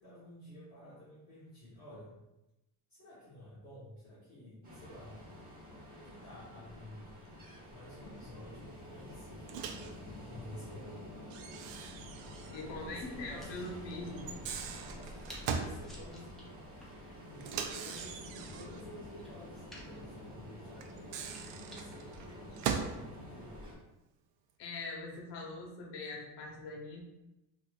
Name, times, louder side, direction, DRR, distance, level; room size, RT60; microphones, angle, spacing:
voice 1, 0.0-2.1 2.9-5.2 5.9-7.2 7.7-9.5 9.7-11.1 12.5-14.5 14.9-16.6 17.2-23.7, left 1 dB, 35° left, -11 dB, 1.2 m, -52 dB
Ocean, 4.6-23.8, left 1 dB, 20° right, 1.0 m, -49 dB
Microwave oven, 9.5-9.9 11.3-12.7 13.0-13.1 14.2-15.8 17.4-18.8 20.8-23.0, right 6 dB, 85° right, 0.5 m, -39 dB
sound 1, 11.2-23.3, right 1 dB, ahead, 0.5 m, -54 dB
voice 2, 12.5-14.1 17.0-17.1 24.6-27.0, left 2 dB, 70° left, -1 dB, 1.0 m, -42 dB
4.0 x 2.6 x 2.4 m, 0.95 s
cardioid pair, 130°, 43 cm